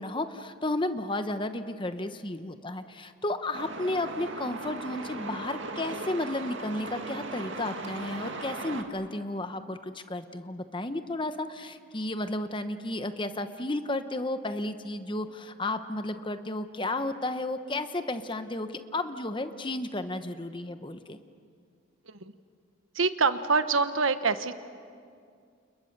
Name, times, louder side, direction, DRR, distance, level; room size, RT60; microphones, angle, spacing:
voice 1, 0.0-21.2, left 2 dB, 25° left, 9 dB, 1.0 m, -33 dB
Truck, 3.5-8.8, right 2 dB, 65° right, 2.2 m, -38 dB
voice 2, 22.9-24.6, right 4 dB, 80° right, 11 dB, 1.2 m, -25 dB
30.0 x 29.5 x 6.8 m, 2.2 s
head